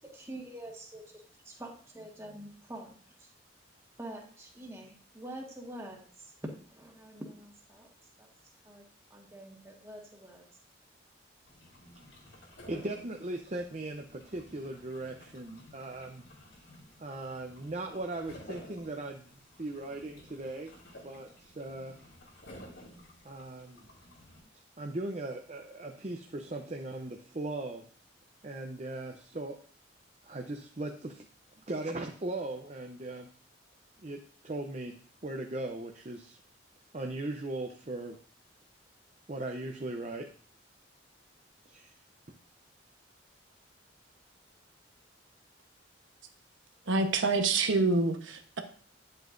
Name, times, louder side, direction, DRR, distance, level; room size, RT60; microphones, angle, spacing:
voice 1, 0.0-3.3 4.0-7.9 8.2-10.5, right 1 dB, 15° right, 0 dB, 1.6 m, -46 dB
sound 1, 11.5-24.4, equal, 75° left, 3.9 m, -53 dB
voice 2, 12.7-16.2 17.0-20.7 21.0-21.9 23.2-23.9 24.8-27.9 28.4-29.6 30.2-31.3 31.7-33.3 34.0-34.2 34.4-34.9 35.2-36.4 36.9-38.2 39.3-40.3 41.7-41.9, right 2 dB, 35° right, 3 dB, 0.7 m, -38 dB
voice 3, 46.9-48.6, right 3 dB, 80° right, 5 dB, 1.0 m, -27 dB
10.0 x 7.8 x 2.6 m, 0.44 s
head